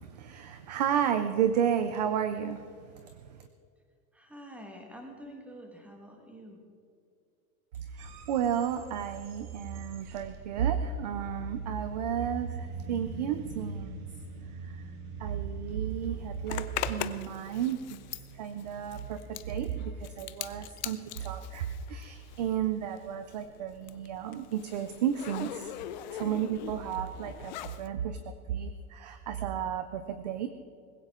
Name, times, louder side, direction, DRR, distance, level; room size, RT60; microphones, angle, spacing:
voice 1, 0.0-2.8 7.9-14.0 14.6-14.8 15.2-18.0 18.3-25.7 26.1-30.5, right 9 dB, 30° right, 10 dB, 0.4 m, -32 dB
voice 2, 4.1-6.6, equal, 5° right, 2 dB, 1.5 m, -47 dB
sound 1, 8.0-27.5, right 4 dB, 90° right, 2.2 m, -44 dB
Zipper (clothing), 16.5-22.6 22.9-27.9, left 12 dB, 35° left, 0.4 m, -41 dB
20.0 x 16.0 x 3.7 m, 2.3 s
supercardioid pair, 170°, 44 cm